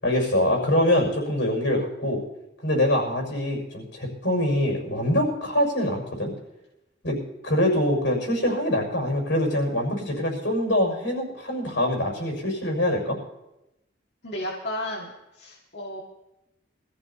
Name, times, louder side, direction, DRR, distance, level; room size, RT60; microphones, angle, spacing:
voice 1, 0.0-2.2 2.6-6.3 7.0-13.2, left 1 dB, 85° left, 0 dB, 6.3 m, -24 dB
voice 2, 14.2-16.0, left 1 dB, 65° left, -4 dB, 2.1 m, -33 dB
25.0 x 15.0 x 2.9 m, 0.93 s
head